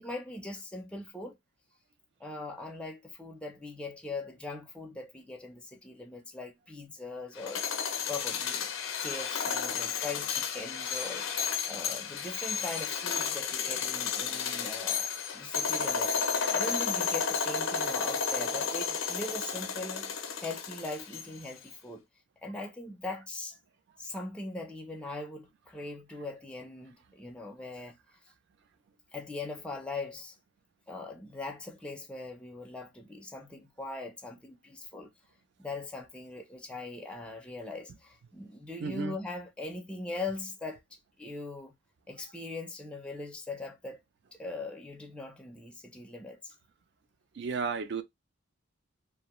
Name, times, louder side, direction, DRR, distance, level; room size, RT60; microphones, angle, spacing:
voice 1, 0.0-1.4 2.2-7.6 8.1-8.7 9.0-20.2 20.4-22.0 22.4-23.6 24.0-28.0 29.1-30.4 30.9-35.1 35.6-41.8 42.1-44.0 44.3-46.5, left 2 dB, 5° left, 0.4 m, -41 dB
sound 1, 7.4-21.5, left 6 dB, 90° left, 0.5 m, -32 dB
voice 2, 38.8-39.2 47.3-48.0, right 5 dB, 60° right, 0.4 m, -34 dB
2.3 x 2.1 x 2.9 m
head